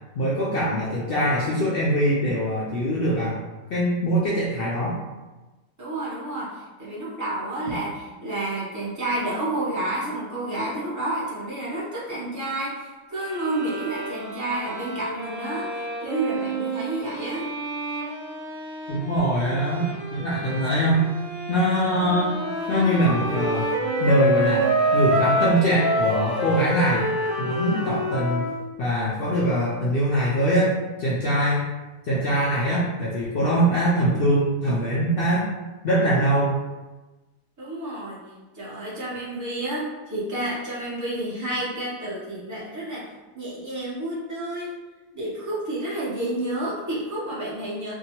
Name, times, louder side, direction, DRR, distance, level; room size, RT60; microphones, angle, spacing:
voice 1, 0.2-3.4 3.7-5.0 18.9-21.0 21.5-22.3 22.7-23.7 24.0-24.6 24.9-27.1 27.4-28.5 28.8-30.7 31.0-31.7 32.1-35.5 35.8-36.5, equal, 85° left, -7 dB, 0.5 m, -22 dB
voice 2, 5.8-17.5 37.6-38.2 38.5-43.0 43.3-44.7 45.1-47.9, right 1 dB, 30° right, -8 dB, 0.3 m, -30 dB
sound 1, 13.2-28.3, right 4 dB, 70° right, 0.9 m, -34 dB
Wind instrument woodwind instrument, 22.3-28.6, equal, 70° left, 1.0 m, -24 dB
2.7 x 2.2 x 2.8 m, 1.1 s
omnidirectional pair, 1.5 m